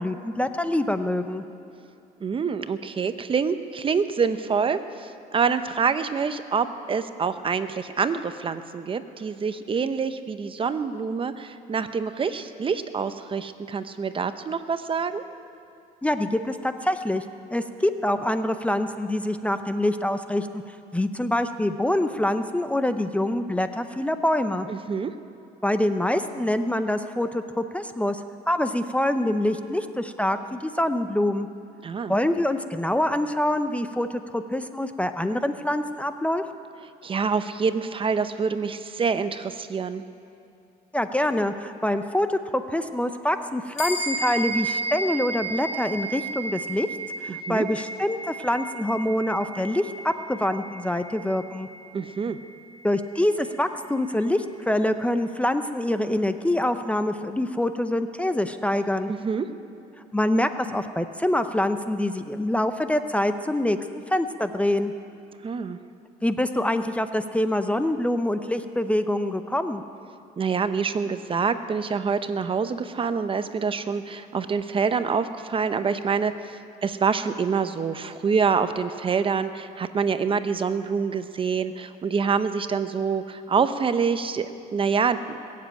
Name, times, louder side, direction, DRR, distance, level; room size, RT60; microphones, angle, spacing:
voice 1, 0.0-1.4 16.0-17.2 17.5-20.6 20.9-24.7 25.6-28.2 28.5-31.5 32.1-34.1 34.3-36.4 40.9-46.9 47.2-51.7 52.8-59.1 60.1-63.8 64.1-64.9 66.2-69.8, left 1 dB, 5° left, 9 dB, 0.6 m, -25 dB
voice 2, 2.2-15.2 24.7-25.1 31.8-32.1 37.0-40.0 47.3-47.7 51.9-52.4 59.1-59.5 65.4-65.8 70.4-85.4, right 5 dB, 30° right, 11 dB, 0.7 m, -26 dB
sound 1, 43.8-53.5, right 2 dB, 45° left, 4.8 m, -34 dB
20.5 x 7.6 x 9.0 m, 2.6 s
cardioid pair, 110°, 17 cm